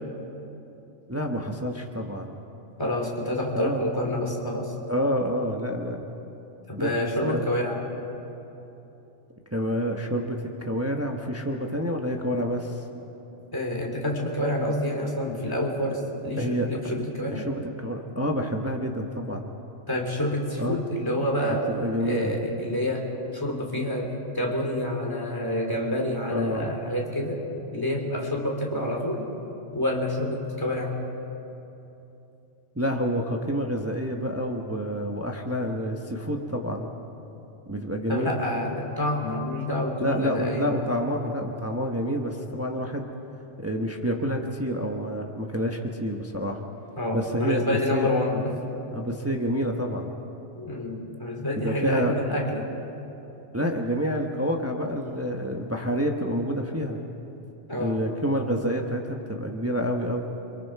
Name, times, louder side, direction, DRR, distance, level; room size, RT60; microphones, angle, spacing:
voice 1, 1.1-2.4 3.5-3.9 4.9-6.0 6.7-7.4 9.5-12.8 16.4-16.7 17.3-19.5 20.6-20.8 21.7-22.4 26.3-26.8 32.7-36.9 37.7-38.4 40.0-43.1 43.6-46.6 47.1-48.1 48.9-50.1 51.5-52.1 53.5-57.0 57.8-60.3, equal, 10° right, 2 dB, 1.1 m, -28 dB
voice 2, 2.8-4.7 6.7-7.8 13.5-17.5 19.9-21.6 22.0-23.1 23.3-27.4 27.7-29.2 29.7-31.0 38.1-40.7 47.0-48.5 50.5-52.7 57.7-58.0, left 1 dB, 15° left, -1 dB, 3.3 m, -28 dB
29.0 x 23.0 x 4.7 m, 2.9 s
omnidirectional pair, 1.3 m